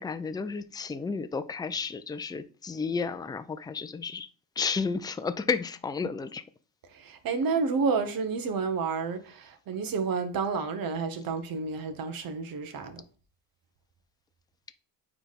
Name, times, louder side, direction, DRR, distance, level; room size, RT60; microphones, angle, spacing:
voice 1, 0.0-4.3 4.6-6.4, left 5 dB, 10° left, 0.5 m, -32 dB
voice 2, 6.9-13.0, right 5 dB, 55° right, 1.3 m, -30 dB
8.9 x 3.5 x 4.2 m
cardioid pair, 90°, 41 cm